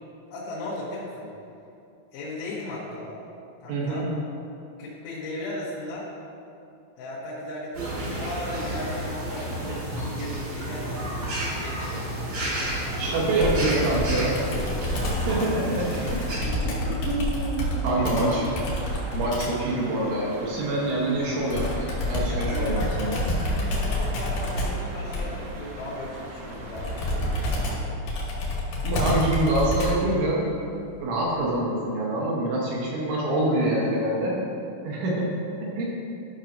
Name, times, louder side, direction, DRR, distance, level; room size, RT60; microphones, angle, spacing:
voice 1, 0.3-1.3 2.1-3.2 3.6-4.1 4.8-6.1 7.0-11.1 11.4-12.6 12.9-13.2 14.4-14.7 15.2-16.0 16.3-16.9 17.9-18.6 22.3-28.1 33.3-34.0, left 1 dB, 90° left, -8 dB, 3.8 m, -37 dB
voice 2, 3.7-4.1 13.0-14.4 15.3-15.8 17.1-18.5 19.1-23.2 28.8-30.5 31.0-34.4 34.8-35.3 35.8-35.9, right 1 dB, 75° right, -5 dB, 3.3 m, -25 dB
sound 1, 7.7-16.4, right 1 dB, 55° right, 1.8 m, -31 dB
Computer keyboard, 13.4-19.7 21.5-30.2, left 1 dB, 65° left, 2.2 m, -28 dB
sound 2, 17.8-27.8, right 2 dB, 90° right, 2.2 m, -40 dB
13.5 x 5.6 x 2.6 m, 2.7 s
omnidirectional pair, 5.8 m